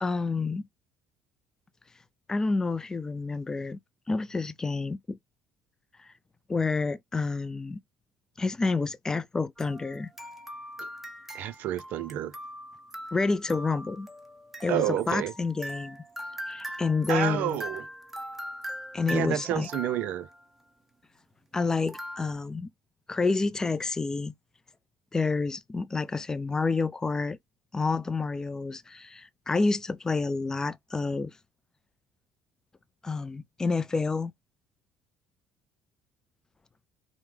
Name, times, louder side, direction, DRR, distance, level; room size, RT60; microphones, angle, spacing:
voice 1, 0.0-0.6 2.3-3.8 4.1-5.2 6.0-6.1 6.5-7.8 8.4-10.1 13.1-14.1 14.6-16.0 16.5-17.6 18.9-19.7 21.5-22.7 23.1-24.3 25.1-27.4 27.7-31.4 33.0-34.3, left 4 dB, 20° left, 0.3 m, -29 dB
sound 1, 9.6-20.4 21.9-22.3, equal, 10° right, 0.9 m, -41 dB
voice 2, 11.3-12.4 14.7-15.3 17.1-17.9 19.1-20.3, right 12 dB, 65° right, 0.4 m, -30 dB
4.6 x 2.1 x 3.3 m
supercardioid pair, 85°, 3 cm